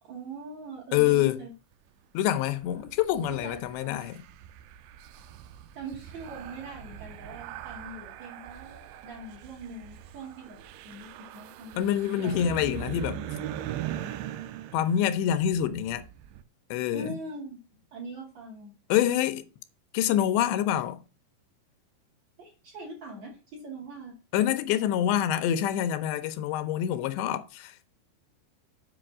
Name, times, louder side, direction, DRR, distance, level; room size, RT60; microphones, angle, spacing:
voice 1, 0.0-1.5 3.3-3.6 5.7-10.6 10.8-11.8 12.2-12.4 16.9-17.6 17.9-18.7 22.4-24.2, right 3 dB, 45° right, 3.0 m, -42 dB
voice 2, 0.9-1.4 2.1-4.2 11.8-13.2 14.7-16.1 16.7-17.2 18.9-19.5 19.9-21.0 24.3-27.9, left 11 dB, 80° left, 2.8 m, -26 dB
sound 1, 2.6-16.4, right 10 dB, 85° right, 3.0 m, -41 dB
7.7 x 5.5 x 5.9 m
omnidirectional pair, 5.3 m